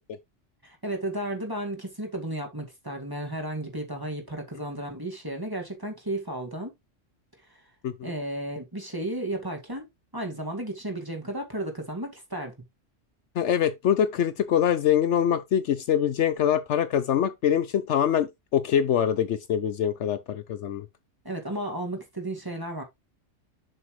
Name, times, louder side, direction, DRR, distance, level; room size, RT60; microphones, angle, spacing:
voice 1, 0.6-6.7 8.0-9.9 10.1-12.5 21.2-22.8, right 1 dB, 15° right, 2.0 m, -33 dB
voice 2, 13.4-20.8, left 9 dB, 70° left, 0.9 m, -24 dB
7.7 x 5.6 x 3.1 m
omnidirectional pair, 1.3 m